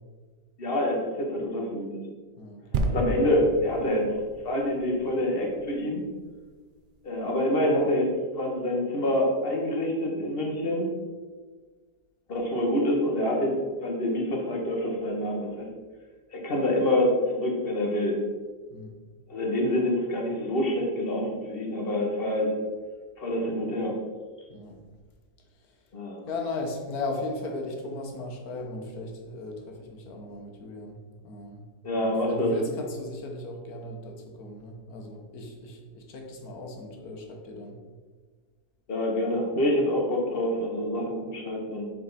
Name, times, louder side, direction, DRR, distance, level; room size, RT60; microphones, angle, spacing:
voice 1, 0.6-1.9 2.8-4.1 4.4-6.0 7.0-10.9 12.3-15.7 16.3-18.2 19.3-22.5 23.2-24.0 25.9-26.2 31.8-32.5 38.9-41.8, left 1 dB, 35° left, 0 dB, 1.4 m, -26 dB
voice 2, 2.4-2.9 18.7-19.0 24.5-24.8 25.6-25.7 26.2-31.0 31.2-31.6 31.9-37.8, left 2 dB, 65° left, 2 dB, 1.5 m, -37 dB
sound 1, 2.7-6.3 7.0-7.1, right 2 dB, 90° right, 0.4 m, -32 dB
7.4 x 4.5 x 4.0 m, 1.4 s
omnidirectional pair, 1.8 m